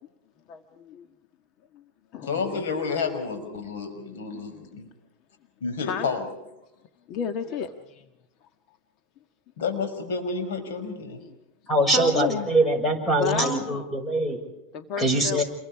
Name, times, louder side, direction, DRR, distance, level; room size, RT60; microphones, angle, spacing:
voice 1, 0.5-1.1 1.7-1.8 2.1-2.6 4.3-4.4 5.8-6.1 7.1-8.1 11.2-11.3 11.9-12.5 13.2-13.9 14.7-15.4, left 7 dB, 45° left, 7 dB, 1.6 m, -32 dB
voice 2, 2.2-4.9 5.6-6.3 9.6-11.2, left 5 dB, 90° left, 6 dB, 5.6 m, -30 dB
voice 3, 11.7-14.4 15.0-15.4, right 1 dB, 10° left, 7 dB, 6.3 m, -23 dB
28.5 x 23.5 x 4.9 m, 0.91 s
supercardioid pair, 135°, 0 cm